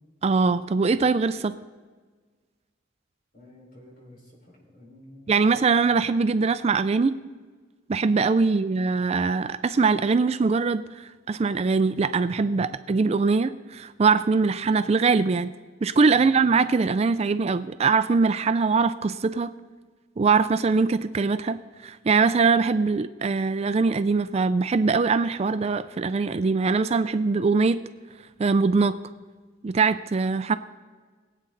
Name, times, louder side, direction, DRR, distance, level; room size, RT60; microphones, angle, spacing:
voice 1, 0.2-1.6 5.3-7.2 7.9-15.5 15.8-19.5 20.2-21.6 21.8-27.8 28.4-29.0 29.6-30.6, right 4 dB, 35° right, 12 dB, 0.4 m, -22 dB
voice 2, 3.3-5.9 8.5-8.6 12.6-12.8 16.1-16.4, left 2 dB, 50° left, -2 dB, 4.4 m, -50 dB
22.0 x 8.5 x 3.9 m, 1.4 s
head